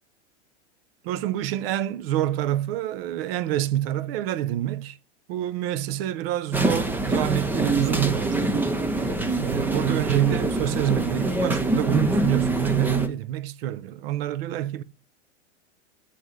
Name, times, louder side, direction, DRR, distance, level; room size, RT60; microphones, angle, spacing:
voice 1, 1.0-5.0 5.3-8.6 9.4-14.8, right 13 dB, 55° right, 0.7 m, -27 dB
sound 1, 6.5-13.1, right 2 dB, 5° right, 0.4 m, -25 dB
7.4 x 4.1 x 4.8 m
hypercardioid pair, 130°, 36 cm